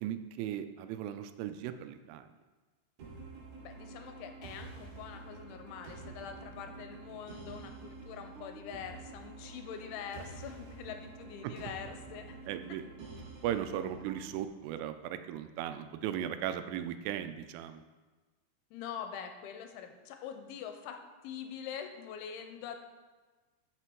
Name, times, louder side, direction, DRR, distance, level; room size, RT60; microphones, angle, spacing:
voice 1, 0.0-2.3 11.4-11.5 12.5-12.8 13.4-17.8, right 10 dB, 85° right, 10 dB, 3.2 m, -37 dB
sound 1, 3.0-14.4, right 3 dB, 60° right, 4.0 m, -48 dB
voice 2, 3.6-12.4 18.7-21.0 21.2-22.8, left 8 dB, 80° left, 6 dB, 3.1 m, -44 dB
13.0 x 6.8 x 4.6 m, 1.3 s
omnidirectional pair, 5.6 m